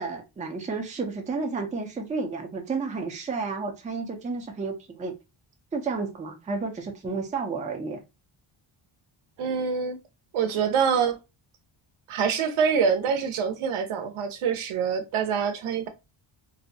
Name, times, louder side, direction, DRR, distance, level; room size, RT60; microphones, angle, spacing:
voice 1, 0.0-5.1 5.7-8.0, right 4 dB, 15° right, 0.4 m, -31 dB
voice 2, 9.4-10.0 10.3-11.2 12.1-15.9, right 6 dB, 75° right, 0.6 m, -25 dB
2.7 x 2.1 x 2.6 m
wide cardioid pair, 140°, 50 cm